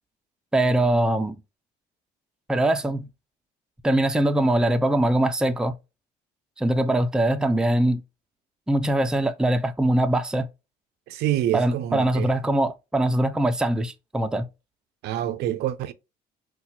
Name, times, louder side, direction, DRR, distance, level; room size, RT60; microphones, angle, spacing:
voice 1, 0.5-1.4 2.5-3.1 3.8-5.7 6.6-8.0 8.7-10.5 11.5-14.5, right 1 dB, 5° right, 0.4 m, -22 dB
voice 2, 11.1-12.3 15.0-15.9, right 12 dB, 80° right, 0.4 m, -26 dB
4.2 x 2.2 x 2.7 m
cardioid pair, 110°, 17 cm